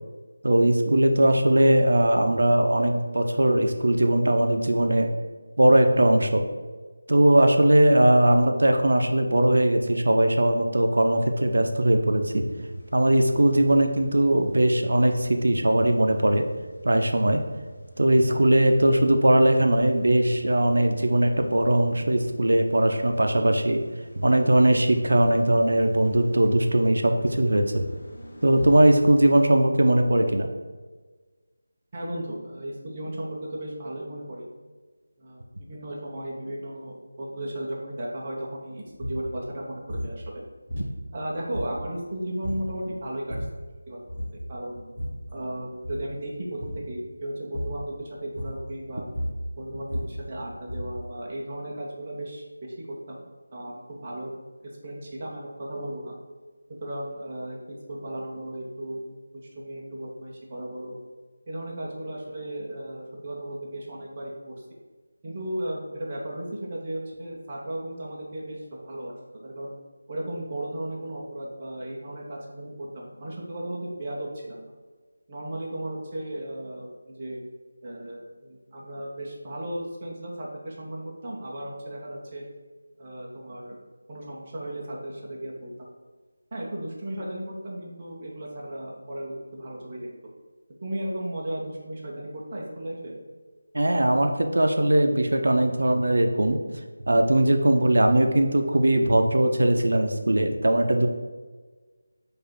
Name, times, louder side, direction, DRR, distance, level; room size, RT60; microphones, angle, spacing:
voice 1, 0.4-5.1 5.6-6.4 7.1-12.4 12.9-16.4 16.8-17.4 18.0-23.8 24.2-27.8 28.4-30.5 93.7-96.6 97.1-101.1, right 1 dB, 75° right, 5 dB, 0.5 m, -20 dB
Car / Engine starting / Idling, 12.3-28.8, right 1 dB, 30° left, 0.7 m, -47 dB
voice 2, 31.9-34.5 35.2-40.4 41.1-43.4 43.9-44.9 45.3-49.1 49.6-53.2 53.5-54.3 54.6-56.2 56.8-59.1 59.5-60.9 61.5-64.5 65.2-69.1 69.4-69.8 70.1-74.6 75.3-77.4 77.8-82.4 83.0-83.8 84.1-85.9 86.5-90.1 90.8-93.1, right 1 dB, 20° right, -4 dB, 0.5 m, -35 dB
sound 1, 39.0-39.3 39.9-40.2 40.7-41.2 41.5-42.0 42.4-42.7 43.1-43.6 44.1-44.5 44.7-45.3 45.7-46.1 46.6-46.9 47.5-47.9 48.3-48.7 49.0-51.1, equal, 10° left, 1.2 m, -33 dB
4.6 x 2.5 x 4.5 m, 1.3 s
figure-of-eight pair, 180°, 0 cm